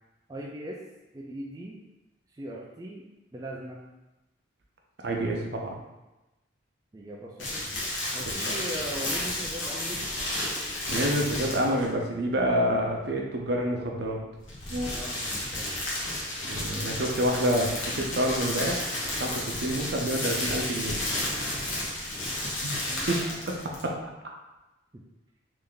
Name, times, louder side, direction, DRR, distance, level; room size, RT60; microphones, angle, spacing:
voice 1, 0.3-0.8 1.1-1.8 2.3-3.0 3.3-3.8 6.9-7.7 8.1-10.0 14.9-15.7 21.8-22.3 22.9-23.4 24.9-25.0, right 1 dB, 20° right, -4 dB, 0.3 m, -39 dB
voice 2, 5.0-5.8 8.4-8.6 10.9-14.2 14.7-14.9 16.4-21.0 22.6-22.7 23.1-23.9, equal, 55° right, 0 dB, 0.6 m, -28 dB
sound 1, 7.4-11.9 14.3-23.9, left 1 dB, 85° left, 1.1 m, -32 dB
3.3 x 2.6 x 3.7 m, 1.0 s
head